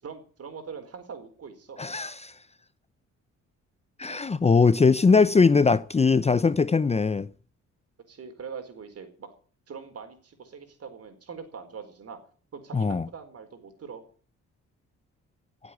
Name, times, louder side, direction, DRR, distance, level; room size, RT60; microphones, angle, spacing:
voice 1, 0.0-1.8 4.1-4.2 8.1-9.3 9.7-12.2 12.5-14.0, right 6 dB, 50° right, 4.4 m, -42 dB
voice 2, 1.8-2.3 4.0-7.3 12.7-13.0, left 4 dB, 20° left, 0.7 m, -21 dB
17.5 x 8.0 x 9.2 m
cardioid pair, 90°, 30 cm